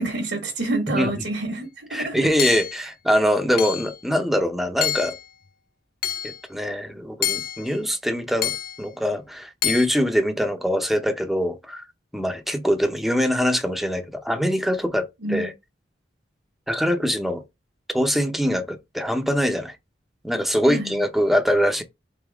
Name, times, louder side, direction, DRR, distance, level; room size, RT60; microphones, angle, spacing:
voice 1, 0.0-2.3 15.2-15.5 20.7-20.9, right 2 dB, 70° right, 1.2 m, -27 dB
voice 2, 1.9-5.2 6.2-11.8 12.1-15.5 16.7-17.4 17.9-19.8 20.2-21.8, equal, ahead, 0.6 m, -23 dB
Hammer / Chink clink, 2.4-2.8 3.6-4.0 4.8-5.2 6.0-6.4 7.2-7.7 8.4-8.8 9.6-9.9, left 10 dB, 55° left, 0.5 m, -27 dB
4.0 x 3.6 x 3.4 m
head